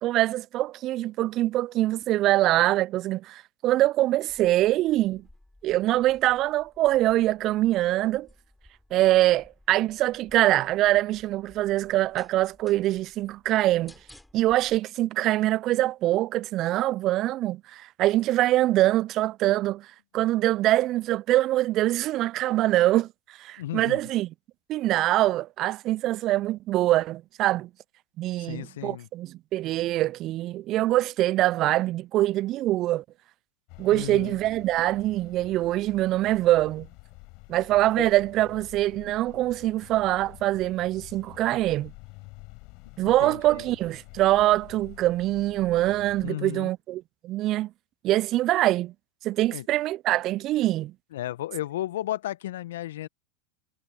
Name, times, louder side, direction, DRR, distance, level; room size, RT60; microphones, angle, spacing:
voice 1, 0.0-5.2 5.6-8.3 8.9-13.9 14.3-19.9 20.1-23.1 23.4-24.3 24.7-27.7 28.2-33.0 33.8-36.9 37.5-41.9 43.0-47.7 48.0-48.9 49.2-50.9, right 15 dB, 45° right, 0.4 m, -24 dB
sound 1, 4.3-14.8, left 1 dB, 5° left, 4.2 m, -57 dB
voice 2, 23.6-24.0 28.4-29.1 33.9-34.4 38.0-38.1 43.0-43.6 46.2-46.7 49.5-49.7 51.1-53.1, left 14 dB, 70° left, 1.0 m, -34 dB
sound 2, 33.7-46.3, left 28 dB, 55° left, 6.9 m, -48 dB
hypercardioid pair, 90°, 0 cm